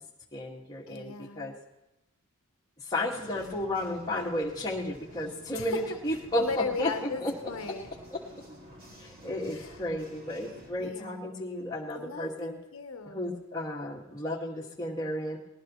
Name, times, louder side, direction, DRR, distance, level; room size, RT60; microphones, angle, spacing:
voice 1, 0.3-1.5 2.8-7.3 8.1-8.2 8.9-12.5 13.1-15.4, left 1 dB, 15° left, -3 dB, 1.9 m, -33 dB
voice 2, 0.9-1.6 5.5-5.8 6.4-7.9 9.5-9.7 10.8-11.4 11.9-13.4, left 4 dB, 75° left, 6 dB, 0.9 m, -37 dB
sound 1, 3.1-10.7, equal, 40° right, 2.2 m, -50 dB
19.5 x 18.5 x 3.1 m, 0.91 s
head